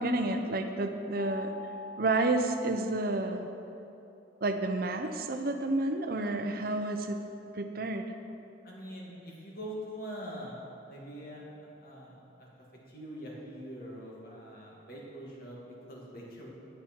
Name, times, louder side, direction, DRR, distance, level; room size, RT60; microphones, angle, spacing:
voice 1, 0.0-1.5 2.0-3.5 4.4-7.2 7.5-8.1, right 2 dB, 50° right, 6 dB, 0.6 m, -30 dB
Mallet percussion, 1.2-3.2, left 2 dB, 75° left, 1.3 m, -45 dB
voice 2, 8.6-12.5 12.9-16.5, equal, 50° left, -3 dB, 2.3 m, -43 dB
11.0 x 9.9 x 4.5 m, 2.8 s
head